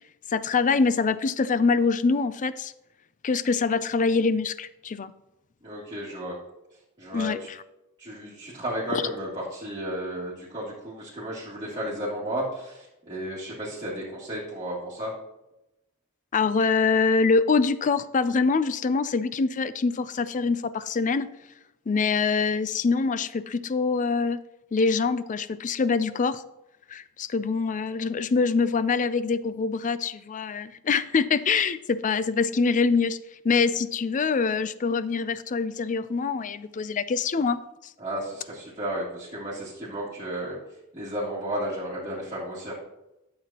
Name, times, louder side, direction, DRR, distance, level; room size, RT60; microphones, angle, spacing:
voice 1, 0.3-2.7 3.2-5.1 7.1-7.4 16.3-21.3 21.9-24.4 24.7-26.4 26.9-33.2 33.4-37.6, left 4 dB, 35° left, 14 dB, 0.4 m, -24 dB
voice 2, 5.6-6.4 7.0-7.5 8.0-15.1 38.0-40.6 40.9-42.8, equal, 20° right, -11 dB, 2.7 m, -33 dB
13.0 x 7.6 x 2.9 m, 0.92 s
head